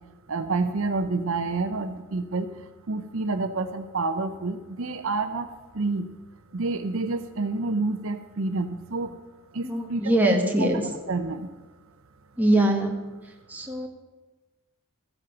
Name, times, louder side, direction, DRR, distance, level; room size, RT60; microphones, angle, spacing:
voice 1, 0.3-2.5 2.9-5.5 5.7-6.1 6.5-9.2 9.5-10.0 10.6-10.7 11.1-11.5, right 3 dB, 65° right, 8 dB, 0.7 m, -28 dB
voice 2, 9.6-10.8 12.4-13.0 13.2-13.9, right 1 dB, 10° right, 0 dB, 1.4 m, -23 dB
14.0 x 8.0 x 5.9 m, 1.2 s
head